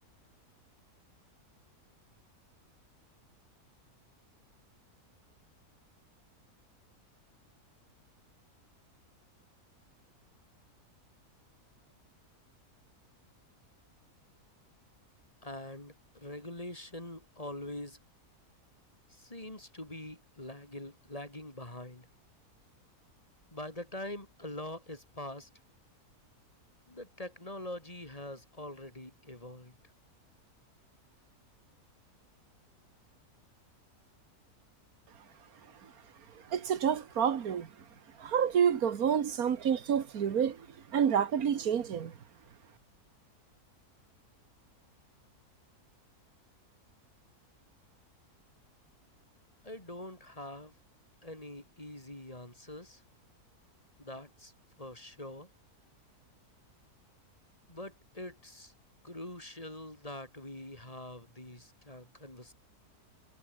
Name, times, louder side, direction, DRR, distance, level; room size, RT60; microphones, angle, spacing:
voice 1, 15.4-18.0 19.1-22.1 23.5-25.5 26.9-29.8 49.6-50.7 51.2-53.0 54.0-55.5 57.7-58.7 59.0-62.5, left 1 dB, 20° left, 3.8 m, -44 dB
voice 2, 36.4-37.7 38.2-42.1, right 8 dB, 65° right, 1.8 m, -29 dB
omnidirectional pair, 1.7 m